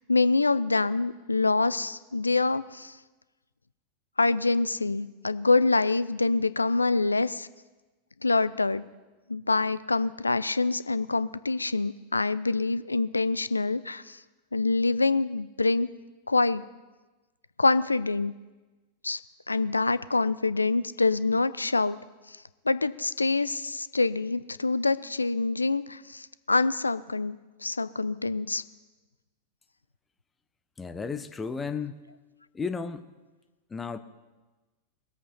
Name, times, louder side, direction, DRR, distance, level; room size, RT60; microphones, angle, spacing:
voice 1, 0.1-2.9 4.2-7.5 8.2-8.8 9.3-14.2 14.5-15.9 16.3-16.6 17.6-18.3 19.0-19.2 19.5-22.0 22.7-27.4 27.6-28.6, left 3 dB, 80° left, 16 dB, 0.4 m, -25 dB
voice 2, 30.8-32.0 32.5-33.1 33.7-34.0, left 5 dB, 15° left, 11 dB, 0.8 m, -33 dB
20.5 x 8.4 x 5.6 m, 1.2 s
figure-of-eight pair, 90°, 0 cm